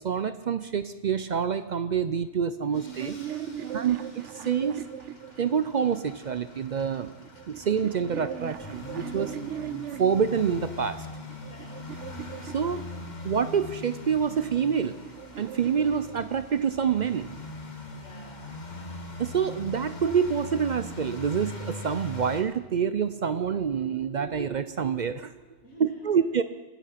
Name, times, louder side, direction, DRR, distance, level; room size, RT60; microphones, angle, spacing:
voice 1, 0.0-3.2 3.7-4.8 5.4-7.1 7.5-9.4 10.0-11.1 12.4-12.8 13.2-14.9 15.4-17.3 19.2-25.3 25.8-26.4, right 7 dB, 55° right, 13 dB, 0.5 m, -27 dB
sound 1, 2.6-6.0 6.9-10.3 11.0-13.4 14.5-16.9, right 9 dB, 75° right, 1.0 m, -39 dB
sound 2, 2.7-22.4, left 3 dB, 40° left, 1.5 m, -42 dB
voice 2, 3.5-4.0 11.5-11.8 17.9-18.7 25.6-26.3, left 2 dB, 80° left, 0 dB, 1.9 m, -52 dB
24.0 x 8.3 x 5.8 m, 1.2 s
omnidirectional pair, 1.2 m